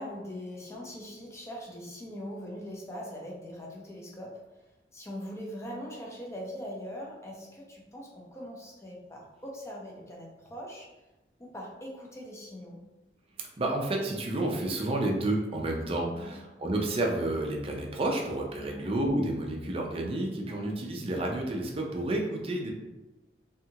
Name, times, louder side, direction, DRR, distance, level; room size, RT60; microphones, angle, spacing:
voice 1, 0.0-4.4 4.9-10.9 11.4-12.8 16.1-16.4 18.6-18.9 20.5-20.7, equal, 15° left, -3 dB, 0.6 m, -41 dB
voice 2, 13.6-22.7, right 1 dB, 35° right, 1 dB, 0.4 m, -30 dB
2.7 x 2.3 x 2.8 m, 1.1 s
head